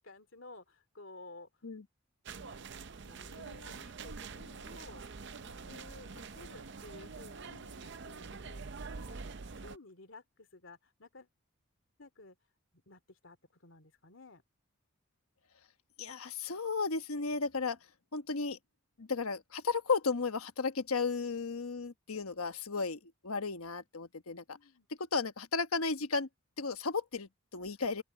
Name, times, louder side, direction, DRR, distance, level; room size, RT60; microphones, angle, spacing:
voice 1, 0.0-1.5 2.4-5.0 5.4-8.8 9.1-9.2 9.6-11.3 12.0-12.4 12.7-14.4 24.5-24.9, left 2 dB, 65° left, 2.6 m, -54 dB
sound 1, 2.3-9.8, right 4 dB, 55° right, 0.6 m, -46 dB
voice 2, 16.0-17.8 18.1-18.6 19.0-24.4 25.1-26.3 26.6-28.0, left 4 dB, 90° left, 1.2 m, -34 dB
open air
head